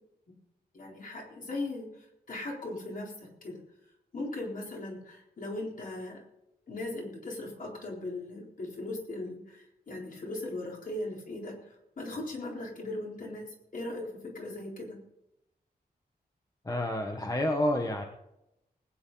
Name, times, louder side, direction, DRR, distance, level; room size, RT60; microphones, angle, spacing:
voice 1, 0.7-3.6 4.1-6.2 6.7-13.5 13.7-15.0, left 2 dB, 55° left, -1 dB, 4.0 m, -38 dB
voice 2, 16.6-18.0, left 1 dB, 20° left, 3 dB, 1.1 m, -29 dB
20.0 x 9.7 x 4.0 m, 0.84 s
wide cardioid pair, 165°, 16 cm